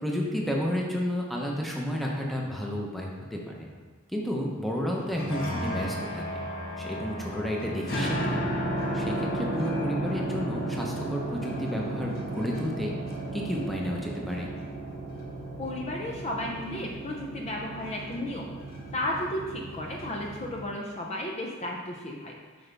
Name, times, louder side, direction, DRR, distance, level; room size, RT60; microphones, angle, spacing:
voice 1, 0.0-3.7 4.1-6.4 6.8-8.4 8.9-12.9 13.3-14.5, equal, ahead, -2 dB, 0.8 m, -31 dB
sound 1, 5.0-20.6, right 1 dB, 50° left, 1.3 m, -34 dB
voice 2, 15.6-18.5 18.9-22.3, left 1 dB, 30° left, -1 dB, 0.6 m, -33 dB
7.8 x 5.5 x 3.5 m, 1.5 s
head